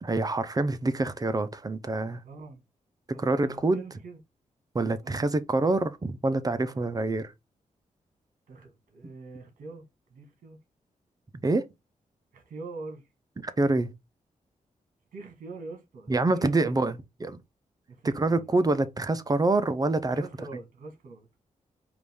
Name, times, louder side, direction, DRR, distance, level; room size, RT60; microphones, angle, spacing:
voice 1, 0.0-2.2 3.1-3.8 4.7-7.3 11.4-11.6 13.6-13.9 16.1-17.4 18.0-20.2, right 2 dB, 25° right, 0.6 m, -26 dB
voice 2, 2.2-2.6 3.1-4.2 5.0-5.3 6.6-6.9 8.5-9.8 10.1-10.6 12.3-13.1 15.1-16.8 17.9-18.5 20.1-21.4, right 3 dB, 80° right, 1.4 m, -44 dB
5.0 x 2.6 x 3.5 m
cardioid pair, 75°, 14 cm